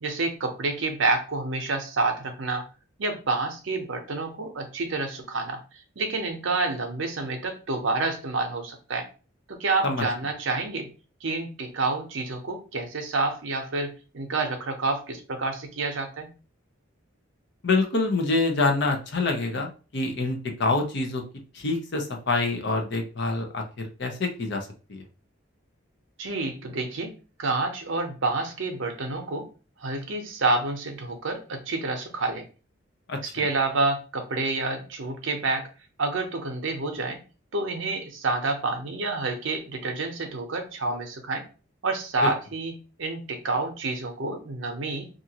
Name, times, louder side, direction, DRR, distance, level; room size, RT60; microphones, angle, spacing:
voice 1, 0.0-2.6 3.0-5.6 6.0-9.1 9.6-10.9 11.2-16.3 26.2-27.1 27.4-29.5 29.8-32.4 33.2-35.7 36.0-37.2 37.5-41.4 41.8-42.7 43.0-45.1, right 3 dB, 65° right, 5 dB, 0.7 m, -28 dB
voice 2, 17.6-21.2 21.5-25.0 33.1-33.2 42.2-42.3, left 3 dB, 55° left, 3 dB, 0.6 m, -26 dB
2.6 x 2.4 x 2.8 m, 0.35 s
head